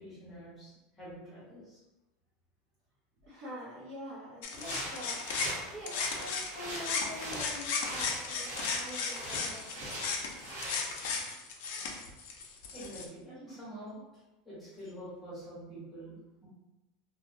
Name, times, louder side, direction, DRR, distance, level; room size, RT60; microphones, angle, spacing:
voice 1, 0.0-1.8 12.4-16.5, right 1 dB, 5° left, -10 dB, 1.0 m, -47 dB
voice 2, 3.2-9.9, left 1 dB, 30° right, -7 dB, 0.6 m, -45 dB
sound 1, 4.4-6.5 6.8-13.1, left 5 dB, 55° left, 0.4 m, -35 dB
sound 2, 4.5-11.1, right 1 dB, 60° right, 1.0 m, -42 dB
2.6 x 2.1 x 2.6 m, 1.0 s
supercardioid pair, 175°, 0 cm